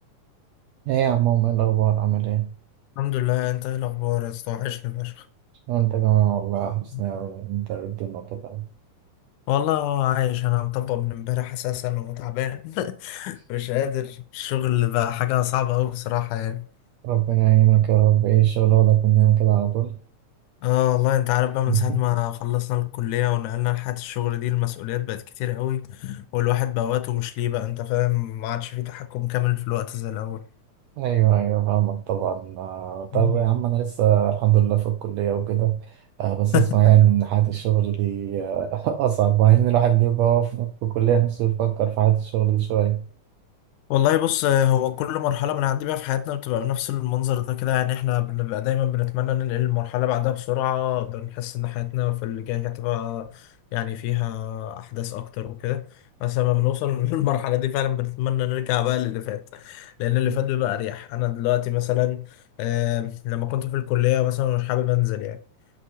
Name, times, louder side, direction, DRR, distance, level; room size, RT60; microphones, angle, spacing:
voice 1, 0.9-2.5 5.7-8.7 17.0-19.9 21.7-21.9 31.0-43.0 60.3-60.4, right 13 dB, 85° right, 1.5 m, -21 dB
voice 2, 3.0-5.3 6.9-7.0 9.5-16.6 20.6-30.4 33.1-33.4 36.5-36.7 43.9-55.8 56.2-62.3 62.6-65.4, left 13 dB, 80° left, 1.9 m, -25 dB
6.3 x 5.9 x 2.8 m
omnidirectional pair, 3.6 m